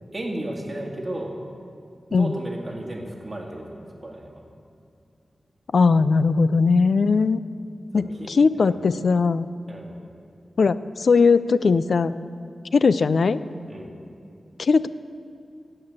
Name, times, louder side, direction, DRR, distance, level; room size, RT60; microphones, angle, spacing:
voice 1, 0.1-1.3 2.1-4.4 7.9-8.7 9.7-10.0 13.7-14.0, right 1 dB, 30° right, -1 dB, 2.1 m, -34 dB
voice 2, 5.7-7.4 7.9-9.5 10.6-12.1 12.7-13.4 14.6-14.9, left 4 dB, 70° left, 14 dB, 0.4 m, -19 dB
12.5 x 7.7 x 8.7 m, 2.6 s
wide cardioid pair, 105°, 0 cm